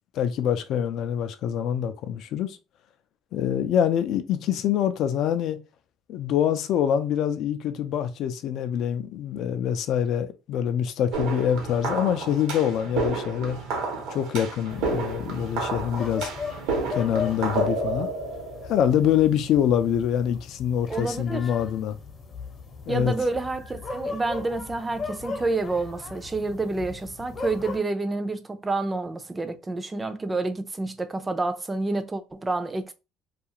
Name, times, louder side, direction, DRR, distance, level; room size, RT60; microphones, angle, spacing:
voice 1, 0.1-2.6 3.3-5.6 6.1-13.6 14.1-16.3 16.9-18.1 18.6-22.0 22.9-23.1, left 9 dB, 65° left, 0.4 m, -25 dB
sound 1, 11.1-19.2, right 3 dB, 80° right, 0.8 m, -30 dB
sound 2, 14.7-27.8, left 4 dB, 40° left, 0.8 m, -38 dB
voice 2, 20.9-21.5 22.9-32.9, right 3 dB, 20° right, 0.4 m, -29 dB
2.4 x 2.4 x 2.8 m
supercardioid pair, 95°, 0 cm